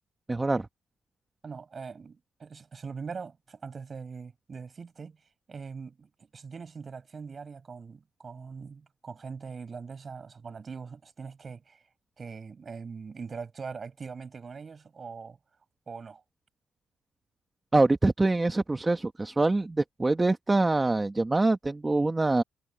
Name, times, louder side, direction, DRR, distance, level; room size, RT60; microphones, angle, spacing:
voice 1, 0.3-0.7 17.7-22.4, right 2 dB, 20° right, 1.6 m, -24 dB
voice 2, 1.4-5.2 5.5-11.8 12.2-15.4 15.9-16.2, right 5 dB, 40° right, 7.9 m, -42 dB
cardioid pair, 90°, 0 cm